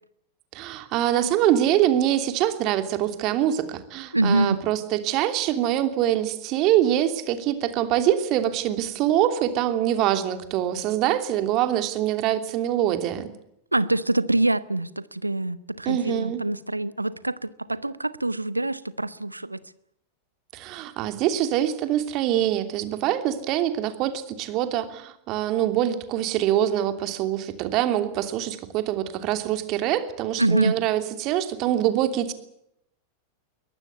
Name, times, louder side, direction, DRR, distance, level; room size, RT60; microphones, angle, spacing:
voice 1, 0.5-13.3 15.8-16.4 20.5-32.3, right 12 dB, 40° right, 2.9 m, -24 dB
voice 2, 4.1-4.6 13.7-19.6 30.4-30.7, right 2 dB, 85° right, 1.0 m, -25 dB
23.0 x 19.0 x 8.3 m
figure-of-eight pair, 90°, 0 cm